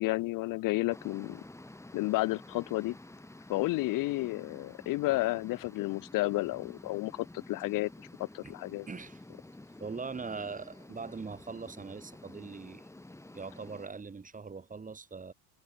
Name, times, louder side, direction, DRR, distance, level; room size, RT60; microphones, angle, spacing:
voice 1, 0.0-1.4 1.9-2.9 3.5-7.9 8.2-8.9, left 20 dB, 50° left, 0.8 m, -31 dB
sound 1, 0.9-13.9, left 2 dB, 5° left, 6.1 m, -51 dB
voice 2, 8.9-9.2 9.8-12.8 13.3-15.3, right 4 dB, 20° right, 6.2 m, -41 dB
supercardioid pair, 120°, 43 cm